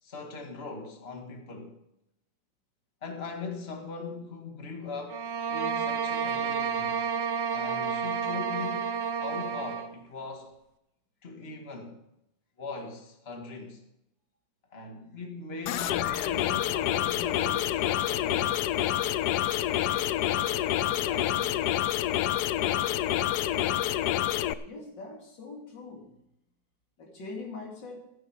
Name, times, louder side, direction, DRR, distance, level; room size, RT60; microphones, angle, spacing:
voice 1, 0.0-1.8 3.0-7.0 7.5-8.9 9.2-10.5 11.2-12.0 12.6-13.8 14.7-18.6 19.7-21.8, left 4 dB, 35° left, 2.1 m, -41 dB
sound 1, 5.1-9.9, right 6 dB, 80° right, 1.5 m, -30 dB
sound 2, 15.7-24.5, left 12 dB, 70° left, 1.1 m, -27 dB
voice 2, 24.6-26.2 27.0-28.1, left 3 dB, 85° left, 3.2 m, -42 dB
14.0 x 10.0 x 5.0 m
omnidirectional pair, 1.9 m